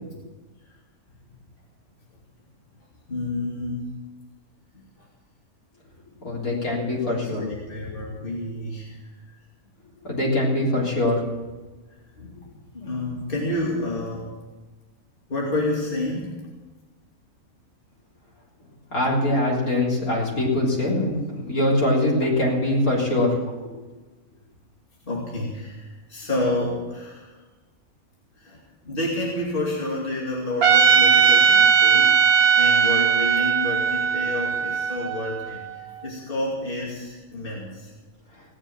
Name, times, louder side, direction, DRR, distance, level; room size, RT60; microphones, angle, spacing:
voice 1, 3.1-3.9 7.0-9.0 12.2-12.4 12.7-14.3 15.3-16.4 25.1-27.3 28.4-28.6 28.8-32.1 32.5-37.9, left 1 dB, 40° left, -4 dB, 2.8 m, -29 dB
voice 2, 6.2-7.5 10.0-11.2 18.9-23.4, left 1 dB, 90° left, -5 dB, 4.2 m, -23 dB
Trumpet, 30.6-35.8, right 7 dB, 80° right, 1.5 m, -19 dB
18.0 x 8.9 x 8.8 m, 1.2 s
omnidirectional pair, 1.5 m